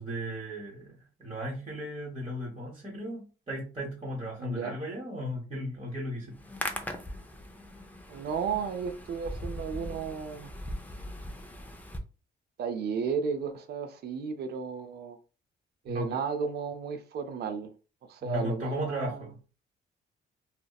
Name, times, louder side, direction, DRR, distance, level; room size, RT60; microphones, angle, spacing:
voice 1, 0.0-6.4 15.8-16.2 18.2-19.4, equal, 25° right, 0.9 m, -36 dB
voice 2, 4.4-4.8 8.1-10.5 12.6-15.2 15.8-17.7 18.1-19.2, right 6 dB, 55° right, 0.4 m, -33 dB
Hands, 6.3-12.0, left 1 dB, 10° left, 0.4 m, -40 dB
2.8 x 2.0 x 2.2 m
cardioid pair, 90°, 20 cm